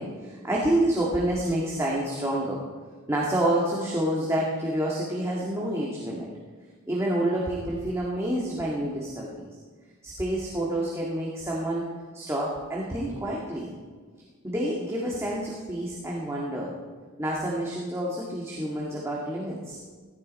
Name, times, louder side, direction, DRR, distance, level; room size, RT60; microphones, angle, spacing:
voice 1, 0.0-2.6 3.1-6.3 6.9-9.5 10.0-11.9 12.1-13.7 14.4-16.7 17.2-19.8, right 1 dB, 15° right, -4 dB, 1.8 m, -28 dB
15.5 x 15.0 x 4.2 m, 1.5 s
head